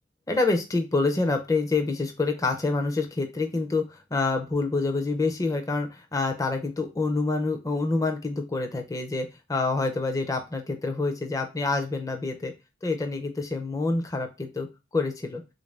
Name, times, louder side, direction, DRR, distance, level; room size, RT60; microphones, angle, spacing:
voice 1, 0.3-12.5 12.8-14.7 14.9-15.4, left 3 dB, 20° left, 5 dB, 0.5 m, -27 dB
3.5 x 2.5 x 3.2 m, 0.26 s
head